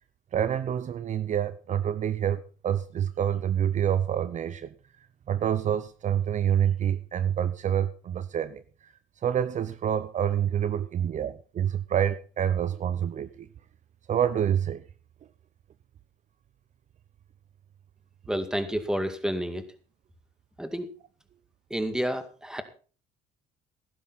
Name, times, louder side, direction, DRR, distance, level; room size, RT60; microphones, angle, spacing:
voice 1, 0.3-4.7 5.3-8.9 9.2-13.5 14.1-14.8, right 9 dB, 45° right, 0.7 m, -27 dB
voice 2, 18.3-19.7 20.6-20.9 21.7-22.6, equal, 5° right, 2.1 m, -30 dB
16.0 x 12.0 x 4.1 m
cardioid pair, 110°, 17 cm